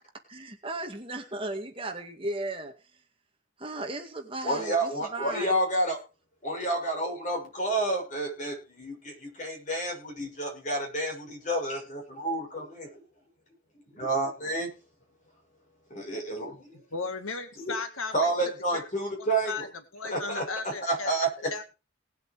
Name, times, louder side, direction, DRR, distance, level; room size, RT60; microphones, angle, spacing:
voice 1, 0.1-3.0 3.6-5.6, right 2 dB, 25° right, 4 dB, 2.0 m, -36 dB
voice 2, 4.4-6.0 6.4-13.0 13.9-14.7 15.9-16.8 18.1-19.7 20.0-21.5, right 1 dB, 35° left, 1 dB, 6.9 m, -30 dB
voice 3, 16.9-18.8 19.4-19.7 19.9-21.1 21.5-21.6, left 4 dB, 90° left, 8 dB, 1.9 m, -35 dB
19.0 x 7.9 x 4.8 m, 0.31 s
head